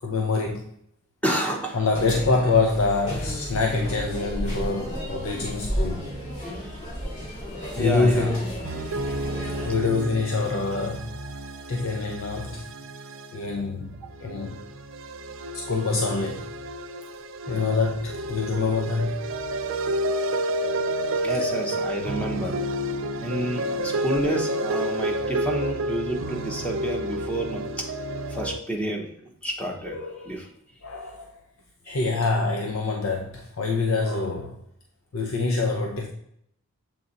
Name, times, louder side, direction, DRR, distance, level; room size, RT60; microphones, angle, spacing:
voice 1, 0.0-0.7 1.7-6.1 7.7-8.5 9.0-9.1 9.5-12.7 13.3-14.6 15.5-16.5 17.5-19.3 21.3-21.4 23.5-24.0 29.8-30.4 30.8-31.3 31.9-34.6 35.1-36.1, left 3 dB, 75° left, 0.7 m, -26 dB
voice 2, 1.2-1.8 7.7-8.3 21.2-22.5 23.2-27.6 28.3-29.1 29.4-30.0 30.2-30.5 31.9-32.0, right 1 dB, 5° left, 0.9 m, -29 dB
sound 1, 1.9-9.7, equal, 35° left, 2.2 m, -33 dB
sound 2, 8.6-28.6, right 1 dB, 65° right, 0.5 m, -30 dB
7.3 x 3.5 x 4.0 m
head